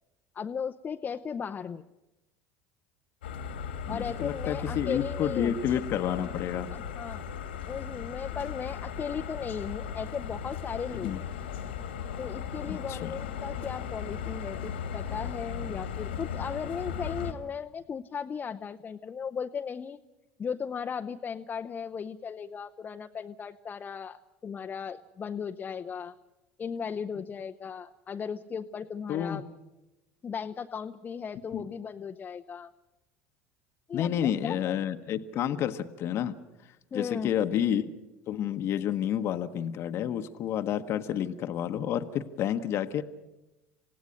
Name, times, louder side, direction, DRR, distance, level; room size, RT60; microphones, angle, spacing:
voice 1, 0.3-1.8 3.9-5.5 6.7-7.3 7.7-11.3 12.2-20.0 20.4-26.2 26.6-29.4 30.2-32.7 33.9-34.7 36.9-37.3, left 6 dB, 30° left, 6 dB, 0.7 m, -36 dB
sound 1, 3.2-17.3, left 7 dB, 85° left, 1.9 m, -37 dB
voice 2, 3.9-6.7 11.0-11.2 12.7-13.1 29.1-29.5 31.5-31.7 33.9-36.4 36.9-37.8 38.3-43.0, left 10 dB, 50° left, 9 dB, 1.0 m, -30 dB
28.0 x 17.0 x 6.5 m, 1.0 s
hypercardioid pair, 75°, 6 cm